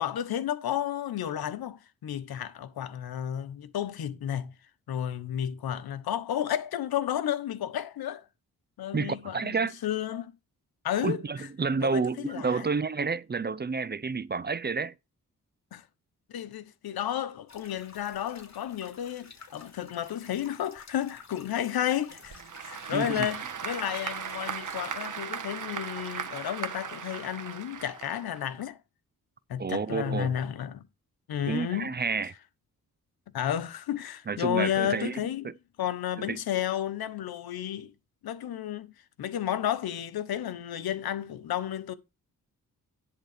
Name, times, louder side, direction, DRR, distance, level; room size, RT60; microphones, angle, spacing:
voice 1, 0.0-4.5 4.9-8.2 8.8-10.3 10.8-11.5 11.8-12.7 15.7-15.8 16.3-28.8 29.5-30.9 31.3-31.9 33.3-35.5 35.8-37.9 38.2-38.9 39.2-41.9, left 10 dB, 90° left, 1.1 m, -32 dB
voice 2, 8.9-9.8 11.0-14.9 22.9-23.3 29.6-30.4 31.4-32.3 34.3-35.5 36.2-36.4, right 5 dB, 30° right, 0.6 m, -30 dB
sound 1, 17.5-25.1, left 4 dB, 50° left, 2.9 m, -52 dB
Applause / Crowd, 22.1-28.7, right 7 dB, 60° right, 1.4 m, -37 dB
10.5 x 3.9 x 6.6 m
cardioid pair, 60°, 36 cm